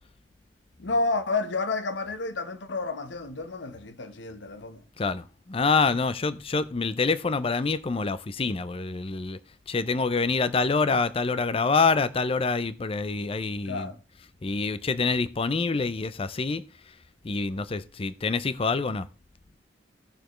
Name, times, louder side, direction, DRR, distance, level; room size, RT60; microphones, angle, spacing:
voice 1, 0.8-5.1 9.9-10.0 13.7-14.0, left 3 dB, 80° left, 1.0 m, -31 dB
voice 2, 5.5-9.4 9.7-13.9 14.4-16.6 17.2-19.1, left 4 dB, 30° left, 0.5 m, -26 dB
16.5 x 6.7 x 3.1 m
head